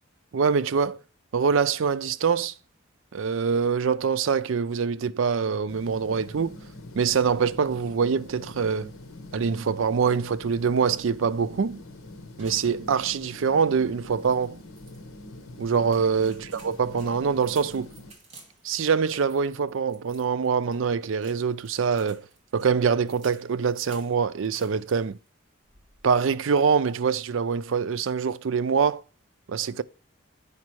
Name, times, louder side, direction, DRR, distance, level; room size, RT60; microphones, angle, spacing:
voice 1, 0.3-1.0 1.3-2.5 3.1-6.6 7.0-8.9 9.3-11.8 12.4-14.6 15.6-17.9 18.6-22.2 22.5-25.2 26.0-29.0 29.5-29.8, right 6 dB, 70° right, 0.4 m, -24 dB
sound 1, 5.7-18.1, left 1 dB, 90° left, 1.1 m, -44 dB
sound 2, 12.4-13.3 13.6-13.7 14.1-15.0 15.6-25.3 25.6-26.2, right 3 dB, 30° right, 2.4 m, -54 dB
8.5 x 5.1 x 4.6 m
head